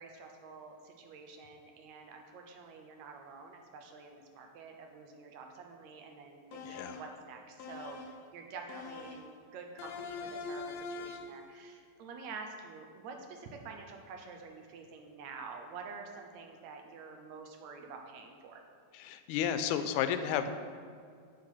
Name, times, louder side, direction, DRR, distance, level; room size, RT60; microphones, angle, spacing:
voice 1, 0.0-18.6, right 4 dB, 75° right, 3 dB, 2.0 m, -48 dB
sound 1, 6.5-7.2 7.6-8.2 8.7-9.3 9.8-11.4, left 4 dB, 75° left, 1.8 m, -43 dB
voice 2, 6.6-7.0 18.9-20.5, left 9 dB, 90° left, 10 dB, 2.1 m, -32 dB
7.3 x 6.6 x 5.5 m, 2.3 s
omnidirectional pair, 3.5 m